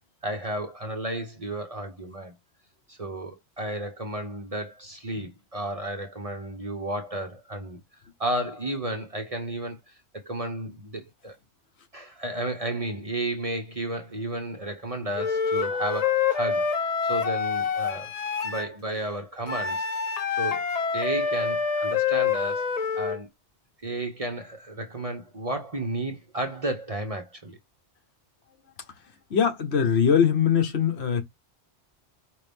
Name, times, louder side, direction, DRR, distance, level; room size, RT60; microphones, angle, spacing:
voice 1, 0.2-2.3 2.9-7.8 8.2-9.8 10.1-11.4 11.9-16.7 17.1-18.1 18.4-19.9 20.4-20.6 20.9-23.3 23.8-27.6, right 1 dB, 35° right, 0.8 m, -32 dB
Wind instrument woodwind instrument, 15.2-18.7 19.5-23.2, left 6 dB, 45° left, 0.5 m, -26 dB
voice 2, 29.3-31.2, left 7 dB, 65° left, 1.2 m, -21 dB
5.2 x 2.8 x 3.4 m
omnidirectional pair, 1.2 m